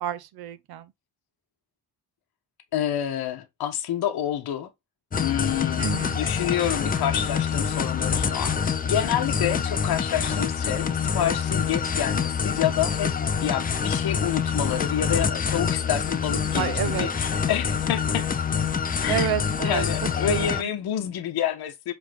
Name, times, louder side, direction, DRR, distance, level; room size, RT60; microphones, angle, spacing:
voice 1, 0.0-0.9 5.8-6.2 16.5-17.1 19.1-19.8 20.3-20.5, right 11 dB, 65° right, 0.9 m, -29 dB
voice 2, 2.7-4.7 5.1-5.9 6.1-18.2 19.0-19.3 19.6-21.9, left 10 dB, 65° left, 1.3 m, -28 dB
sound 1, 5.1-20.6, left 6 dB, 20° left, 0.5 m, -26 dB
7.4 x 3.5 x 3.6 m
cardioid pair, 170°, 40 cm